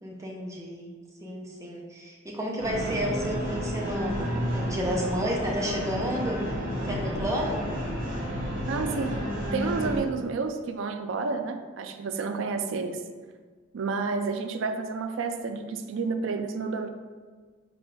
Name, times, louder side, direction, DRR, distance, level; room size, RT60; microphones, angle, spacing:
voice 1, 0.0-0.9 1.2-6.4 6.9-7.6, equal, 15° right, -2 dB, 0.6 m, -31 dB
sound 1, 2.6-10.0, equal, 45° right, 1.4 m, -31 dB
voice 2, 8.7-13.0 13.7-16.9, right 4 dB, 65° right, 7 dB, 0.4 m, -30 dB
3.9 x 3.8 x 3.3 m, 1.5 s
head